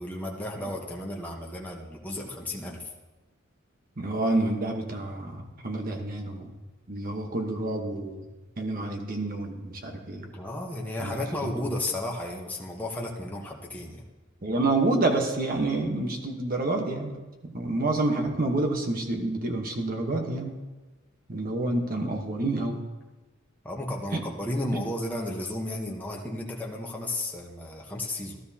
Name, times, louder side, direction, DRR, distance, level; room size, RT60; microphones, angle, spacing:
voice 1, 0.0-2.9 10.2-14.0 23.6-28.4, left 1 dB, 10° left, -2 dB, 1.0 m, -33 dB
voice 2, 4.0-6.5 6.9-8.2 8.6-10.3 11.0-11.5 14.4-17.2 17.4-20.5 21.3-22.8 24.1-24.2, right 2 dB, 45° right, 3 dB, 1.1 m, -28 dB
14.5 x 12.5 x 2.8 m, 1.2 s
head